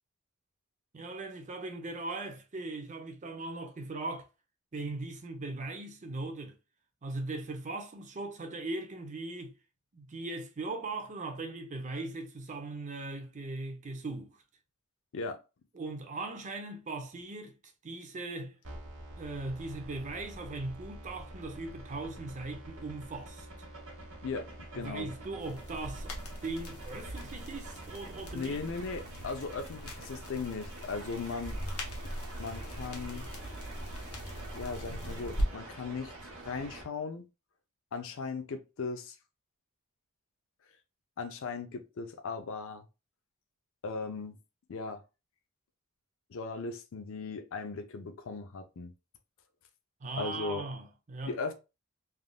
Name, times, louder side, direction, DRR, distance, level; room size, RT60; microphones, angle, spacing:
voice 1, 0.9-4.3 4.7-6.6 7.0-9.5 9.9-14.4 15.7-17.6 17.8-18.6 19.2-23.5 24.7-26.2 26.4-28.6 50.0-51.4, right 2 dB, 35° right, 0.5 m, -39 dB
sound 1, 18.6-36.8, right 1 dB, 65° right, 1.2 m, -47 dB
voice 2, 24.7-25.1 28.3-31.6 32.4-33.3 34.5-37.3 37.9-39.2 41.2-42.9 43.8-44.4 44.7-45.0 46.3-48.9 50.2-50.6 51.2-51.5, left 4 dB, 60° left, 0.5 m, -38 dB
sound 2, 25.4-35.5, equal, 80° left, 1.0 m, -40 dB
3.4 x 2.5 x 2.2 m
head